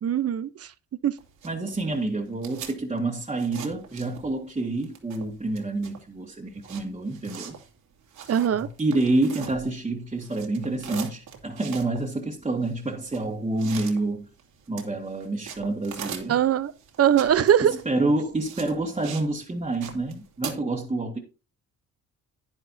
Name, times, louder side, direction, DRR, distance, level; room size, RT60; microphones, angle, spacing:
voice 1, 0.0-0.7 1.0-1.2 8.3-8.7 16.3-16.7 17.0-17.7, right 9 dB, 50° right, 0.9 m, -21 dB
sound 1, 1.2-4.5 4.8-9.9 10.2-19.3 19.6-20.5, right 8 dB, 80° right, 2.7 m, -41 dB
voice 2, 1.4-7.5 8.5-14.3 14.7-16.4 17.7-21.2, right 2 dB, 20° right, 1.9 m, -28 dB
10.5 x 10.0 x 2.8 m
cardioid pair, 90°, 30 cm